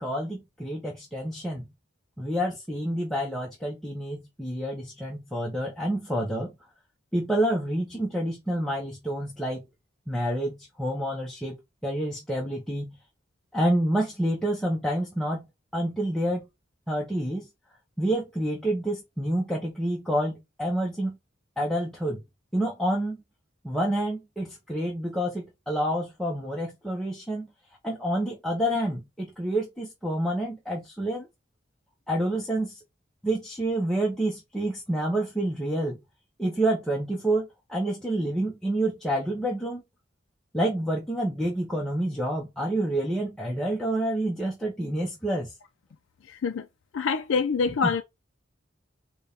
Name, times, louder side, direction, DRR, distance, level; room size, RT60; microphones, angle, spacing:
voice 1, 0.0-1.7 2.2-6.5 7.1-9.7 10.1-13.0 13.5-15.5 15.7-16.5 16.9-17.5 18.0-21.2 21.6-22.2 22.5-23.2 23.6-27.5 27.8-31.3 32.1-32.8 33.2-36.0 36.4-39.8 40.5-45.5 47.8-47.9, right 1 dB, ahead, 0.6 m, -28 dB
voice 2, 46.3-46.7 46.9-48.0, left 5 dB, 75° left, 0.3 m, -25 dB
4.0 x 2.2 x 3.4 m
head